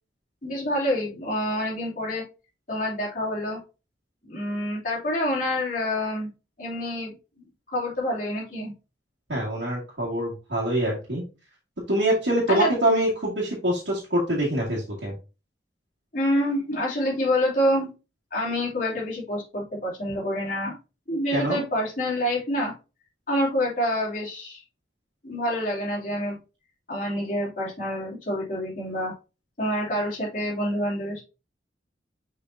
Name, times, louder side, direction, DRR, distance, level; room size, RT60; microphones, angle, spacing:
voice 1, 0.4-2.2 2.7-3.6 4.2-6.3 6.6-7.1 7.7-8.7 12.5-12.7 16.1-17.9 18.3-20.7 21.1-22.7 23.3-24.6 25.2-26.4 26.9-29.1 29.6-31.2, left 1 dB, 45° left, -5 dB, 3.1 m, -27 dB
voice 2, 9.3-11.3 11.9-15.1 21.3-21.6, right 1 dB, 75° right, -6 dB, 2.2 m, -25 dB
6.4 x 5.3 x 2.7 m, 0.30 s
head